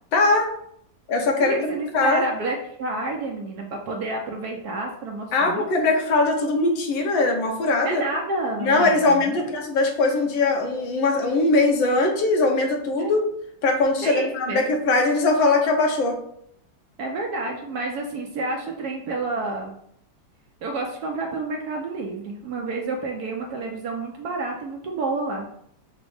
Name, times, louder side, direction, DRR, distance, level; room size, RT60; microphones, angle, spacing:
voice 1, 0.1-0.5 1.1-2.2 5.3-8.0 8.6-13.2 13.6-16.2, left 3 dB, 80° left, 2 dB, 1.6 m, -21 dB
voice 2, 1.5-5.7 7.8-9.4 13.0-13.1 14.0-14.7 17.0-19.7 20.6-25.5, right 2 dB, 70° right, 1 dB, 0.9 m, -29 dB
5.0 x 2.1 x 4.8 m, 0.71 s
omnidirectional pair, 2.1 m